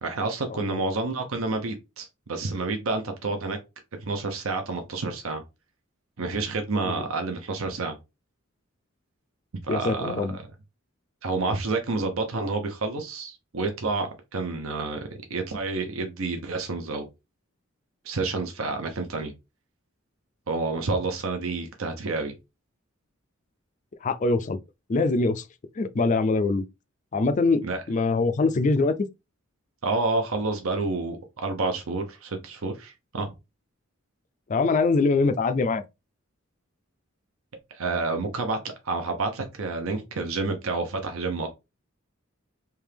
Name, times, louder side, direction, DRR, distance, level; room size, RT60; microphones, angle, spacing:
voice 1, 0.0-3.6 4.0-5.4 6.2-8.0 9.7-10.4 11.2-17.1 18.0-19.3 20.5-22.3 27.6-27.8 29.8-33.3 37.7-41.5, right 3 dB, 80° right, 0.7 m, -29 dB
voice 2, 9.7-10.4 24.0-24.6 24.9-25.4 25.8-26.7 27.1-28.9 34.5-35.8, left 3 dB, 35° left, 0.4 m, -23 dB
3.5 x 2.8 x 3.3 m
head